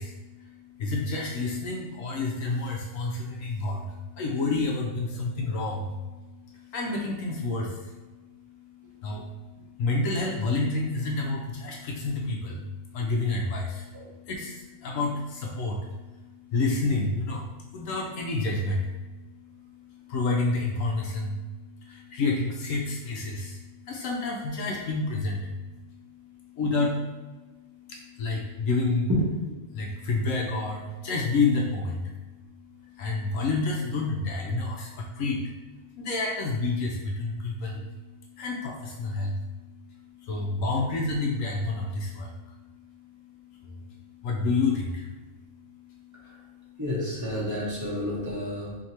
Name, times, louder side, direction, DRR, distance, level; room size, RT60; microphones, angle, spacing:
voice 1, 0.0-29.1 29.7-46.8 47.2-47.3 47.7-47.8, left 3 dB, 75° left, -1 dB, 1.0 m, -30 dB
voice 2, 46.8-48.8, left 2 dB, 15° right, -7 dB, 0.8 m, -30 dB
4.5 x 2.8 x 2.8 m, 1.2 s
omnidirectional pair, 1.4 m